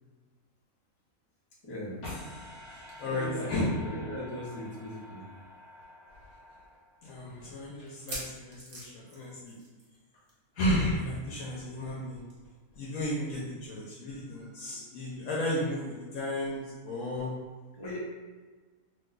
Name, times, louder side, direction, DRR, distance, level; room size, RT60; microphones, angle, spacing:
voice 1, 1.6-2.0 3.0-5.2 17.7-18.0, equal, 25° left, -6 dB, 0.6 m, -38 dB
sound 1, 2.0-7.2, left 1 dB, 60° left, 1.1 m, -47 dB
voice 2, 2.7-3.7 7.0-9.6 10.5-12.2 12.7-17.3, left 1 dB, 75° left, -5 dB, 1.0 m, -33 dB
sound 2, 5.2-5.3 5.6-5.7 6.3-6.4 7.9-10.0 10.3-10.5 10.7-10.8 12.3-12.4, right 1 dB, 50° right, 0.9 m, -43 dB
2.8 x 2.2 x 3.7 m, 1.4 s
omnidirectional pair, 1.5 m